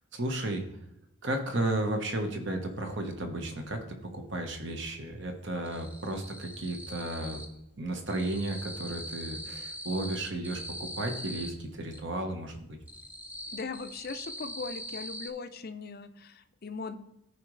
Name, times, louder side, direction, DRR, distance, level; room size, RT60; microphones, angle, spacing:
voice 1, 0.1-0.6 1.2-7.4 7.8-12.8, right 1 dB, 55° right, 4 dB, 1.3 m, -33 dB
sound 1, 2.7-3.7 4.0-4.7 4.9-7.6 7.9-12.0 12.5-15.3, equal, 5° right, 0.6 m, -42 dB
voice 2, 13.5-17.0, left 4 dB, 45° left, 10 dB, 0.5 m, -39 dB
14.0 x 5.0 x 3.2 m, 0.87 s
head